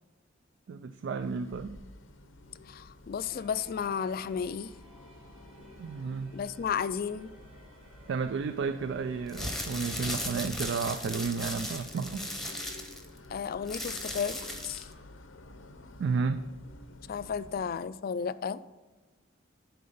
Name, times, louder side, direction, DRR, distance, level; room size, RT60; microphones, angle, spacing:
voice 1, 0.7-1.8 5.8-6.4 8.1-12.3 16.0-16.5, right 5 dB, 65° right, 0.3 m, -32 dB
sound 1, 1.2-17.6, left 2 dB, 90° left, 0.7 m, -51 dB
voice 2, 2.7-4.7 6.3-7.3 13.3-14.9 17.1-18.6, left 7 dB, 50° left, 0.3 m, -33 dB
sound 2, 3.3-10.3, right 1 dB, 25° right, 1.8 m, -57 dB
sound 3, 9.3-14.9, left 1 dB, ahead, 0.9 m, -37 dB
10.0 x 4.3 x 5.5 m
head